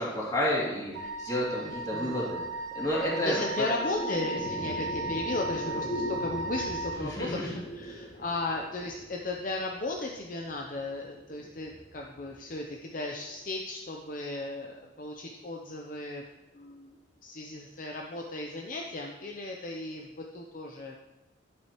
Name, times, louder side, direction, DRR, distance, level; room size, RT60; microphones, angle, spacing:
voice 1, 0.0-2.4 2.7-3.7 7.0-7.5, equal, 20° left, -6 dB, 2.6 m, -30 dB
Wind instrument woodwind instrument, 0.9-7.0, right 2 dB, 80° right, 2.0 m, -36 dB
voice 2, 1.6-2.3 3.1-16.2 16.5-16.9 17.2-20.9, left 2 dB, 45° left, 1 dB, 0.6 m, -36 dB
sound 1, 2.9-13.4, left 1 dB, 70° left, 2.6 m, -41 dB
11.5 x 8.8 x 3.0 m, 1.1 s
head